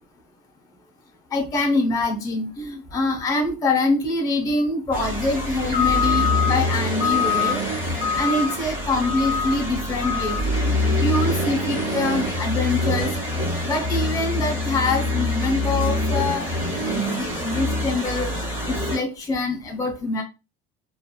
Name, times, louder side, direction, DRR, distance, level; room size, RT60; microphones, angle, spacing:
voice 1, 1.3-7.6 8.2-10.7 11.0-13.1 13.6-16.5 16.9-20.2, left 2 dB, 20° left, 0.6 m, -25 dB
sound 1, 4.9-19.0, left 2 dB, 10° right, 1.4 m, -24 dB
2.9 x 2.3 x 2.2 m
cardioid pair, 165°, 18 cm